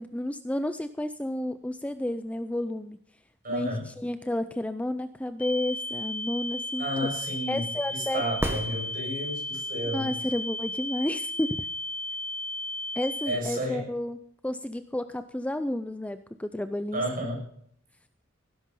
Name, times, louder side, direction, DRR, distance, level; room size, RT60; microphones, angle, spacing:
voice 1, 0.0-3.0 3.5-3.7 4.0-7.1 7.5-8.2 9.9-11.6 13.0-14.2 14.4-17.0, left 1 dB, 5° left, 11 dB, 0.5 m, -31 dB
voice 2, 3.4-3.9 6.8-10.1 13.3-13.8 16.9-17.4, equal, 40° right, 0 dB, 7.0 m, -32 dB
sound 1, 5.4-13.4, left 2 dB, 35° left, 1.7 m, -34 dB
sound 2, 8.3-9.5 13.4-13.5, right 1 dB, 10° right, 1.5 m, -33 dB
17.0 x 10.5 x 5.5 m, 0.65 s
head